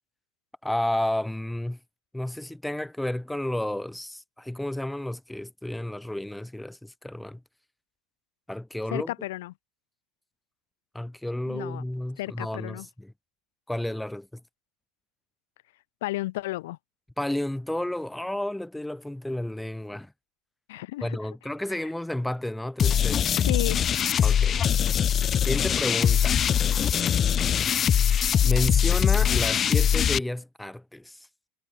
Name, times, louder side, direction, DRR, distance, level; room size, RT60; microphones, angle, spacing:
voice 1, 0.6-1.8 2.1-7.4 8.5-9.1 10.9-13.1 13.7-14.4 17.2-20.1 21.0-23.3 24.2-24.6 25.4-26.4 28.4-31.3, left 1 dB, 5° left, 1.5 m, -31 dB
voice 2, 8.9-9.5 11.5-11.8 12.2-12.9 16.0-16.8 20.7-21.2 21.7-21.9 23.5-23.8, left 18 dB, 75° left, 2.2 m, -33 dB
sound 1, 22.8-30.2, left 9 dB, 35° left, 0.4 m, -22 dB
hypercardioid pair, 95°, 0 cm